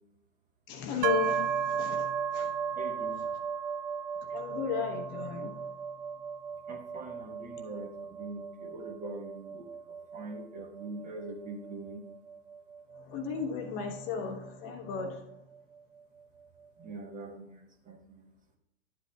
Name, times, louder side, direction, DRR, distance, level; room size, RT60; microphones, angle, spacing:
voice 1, 0.7-2.5 4.2-5.9 12.9-15.4, left 6 dB, 35° left, 5 dB, 1.0 m, -35 dB
sound 1, 1.0-14.7, right 7 dB, 45° right, 0.6 m, -36 dB
voice 2, 2.7-3.3 6.7-12.0 16.8-18.3, right 2 dB, 20° right, 4 dB, 1.1 m, -43 dB
11.0 x 8.1 x 2.3 m, 0.84 s
hypercardioid pair, 115°, 37 cm